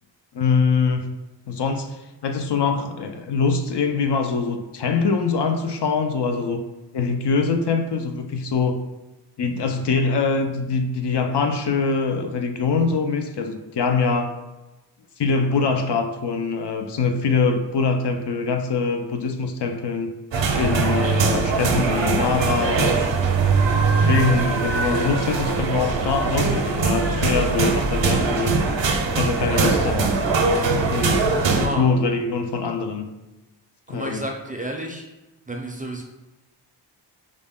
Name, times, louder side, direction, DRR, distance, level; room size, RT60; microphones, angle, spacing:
voice 1, 0.3-1.1 1.5-6.6 6.9-8.8 9.4-14.3 15.2-20.1 20.5-23.1 24.0-28.6 29.1-30.2 30.4-31.2 31.6-33.1 33.9-34.3, left 4 dB, 65° left, 6 dB, 0.5 m, -23 dB
sound 1, 20.3-31.7, right 4 dB, 75° right, 0.6 m, -21 dB
voice 2, 31.5-31.8 33.9-35.0 35.5-36.0, right 1 dB, 20° right, 1 dB, 0.4 m, -30 dB
5.0 x 2.1 x 3.6 m, 1.0 s
wide cardioid pair, 110°, 44 cm